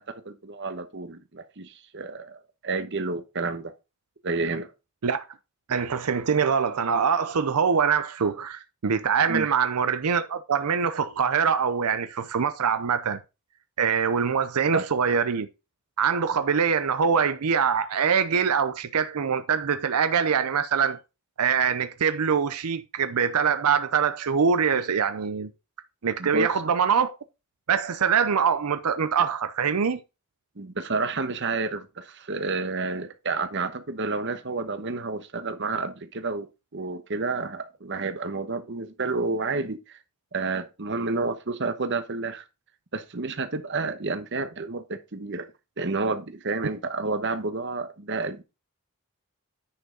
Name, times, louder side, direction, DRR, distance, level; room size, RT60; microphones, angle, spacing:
voice 1, 0.1-3.7 4.2-4.7 9.3-9.5 14.7-14.8 26.2-26.5 30.6-40.0 40.3-42.4 42.9-45.5 45.8-48.4, right 3 dB, 55° right, 1.1 m, -30 dB
voice 2, 5.7-13.2 13.8-15.5 16.0-21.0 21.4-25.5 26.0-27.1 27.7-30.0, right 6 dB, 90° right, 0.6 m, -24 dB
10.0 x 5.4 x 3.8 m
head